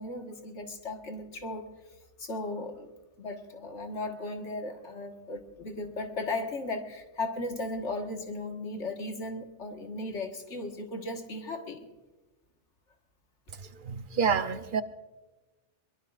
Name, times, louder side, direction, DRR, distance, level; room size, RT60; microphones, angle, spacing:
voice 1, 0.0-1.7 2.2-2.9 3.2-11.9, left 2 dB, 80° left, 3 dB, 1.9 m, -36 dB
voice 2, 13.8-14.8, right 6 dB, 50° right, 9 dB, 0.9 m, -27 dB
22.5 x 22.0 x 2.5 m, 1.2 s
omnidirectional pair, 1.2 m